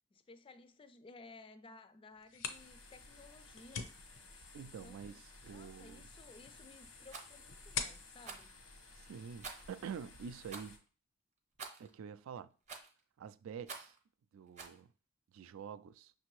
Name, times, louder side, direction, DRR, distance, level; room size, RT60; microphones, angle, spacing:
voice 1, 0.1-3.9 4.6-5.2 5.5-8.5, left 3 dB, 25° left, 0.3 m, -57 dB
sound 1, 2.1-9.7, left 6 dB, 70° left, 0.6 m, -47 dB
sound 2, 2.5-10.8, left 3 dB, 90° left, 1.1 m, -56 dB
voice 2, 4.5-6.1 9.0-10.8 11.8-12.5 13.2-14.0 14.3-14.9 15.3-16.1, right 7 dB, 75° right, 0.3 m, -47 dB
Rattle, 7.1-7.3 8.2-8.5 9.4-9.8 10.5-10.7 11.6-11.9 12.7-13.0 13.7-14.0 14.6-14.8, right 4 dB, 35° right, 0.7 m, -48 dB
5.8 x 2.7 x 3.0 m
head